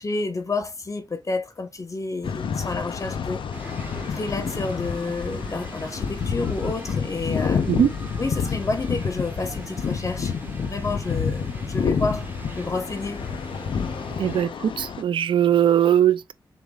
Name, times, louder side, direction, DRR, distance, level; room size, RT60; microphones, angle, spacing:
voice 1, 0.0-3.4 4.1-7.7 8.2-12.3 12.5-13.2, left 3 dB, 40° left, 1.1 m, -30 dB
sound 1, 2.2-15.0, left 6 dB, 90° left, 0.6 m, -29 dB
sound 2, 3.5-14.4, right 2 dB, 25° right, 1.4 m, -40 dB
voice 2, 14.2-16.3, right 10 dB, 90° right, 0.4 m, -20 dB
5.1 x 4.1 x 2.3 m
cardioid pair, 70°, 8 cm